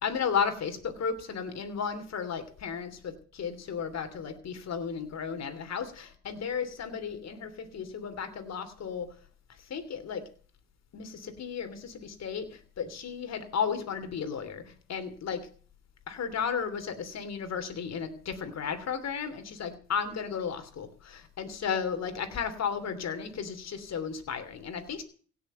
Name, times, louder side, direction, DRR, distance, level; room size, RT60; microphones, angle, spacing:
voice 1, 0.0-9.1 9.7-10.2 10.9-15.5 16.1-25.0, left 6 dB, 60° left, 10 dB, 3.1 m, -34 dB
17.0 x 7.0 x 9.1 m, 0.44 s
cardioid pair, 90°, 30 cm